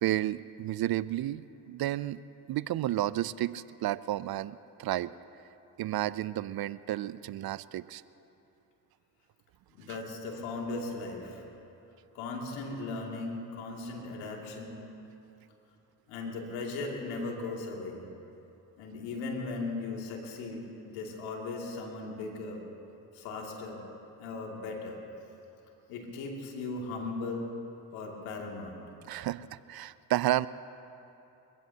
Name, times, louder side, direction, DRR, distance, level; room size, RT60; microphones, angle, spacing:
voice 1, 0.0-2.2 2.5-5.1 5.8-8.0 29.1-30.5, right 14 dB, 50° right, 18 dB, 0.6 m, -32 dB
voice 2, 9.7-11.4 12.1-14.8 16.1-18.0 18.8-22.6 23.1-23.8 24.2-25.0 25.9-27.5 27.9-28.8, left 3 dB, 85° left, 0 dB, 2.7 m, -37 dB
29.5 x 16.0 x 2.9 m, 2.8 s
hypercardioid pair, 50°, 48 cm